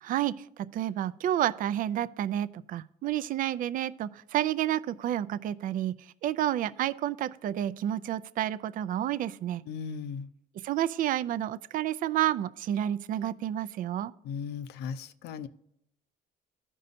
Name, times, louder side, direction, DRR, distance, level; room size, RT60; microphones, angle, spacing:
voice 1, 0.0-5.9 6.2-9.6 10.6-14.1, right 12 dB, 55° right, 0.4 m, -30 dB
voice 2, 9.7-10.3 14.2-15.5, left 6 dB, 75° left, 0.6 m, -37 dB
15.0 x 5.4 x 2.6 m
cardioid pair, 110°, 17 cm